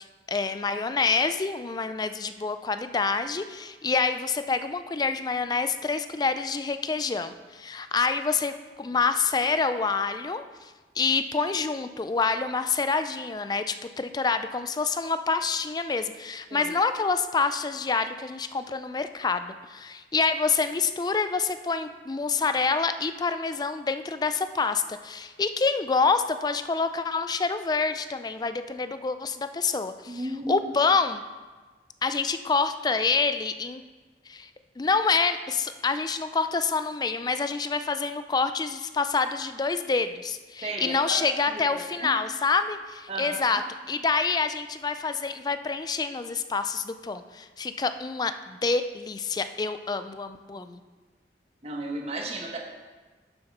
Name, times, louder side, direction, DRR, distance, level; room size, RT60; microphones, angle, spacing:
voice 1, 0.3-10.4 11.0-31.2 32.0-33.8 34.3-34.5 34.8-43.6 43.9-50.8, left 4 dB, 25° left, 10 dB, 0.4 m, -27 dB
voice 2, 30.1-30.7 40.6-41.2 41.5-42.1 43.1-43.6 50.5-50.7 51.6-52.6, right 2 dB, 35° right, 1 dB, 1.2 m, -34 dB
7.1 x 6.6 x 5.9 m, 1.3 s
head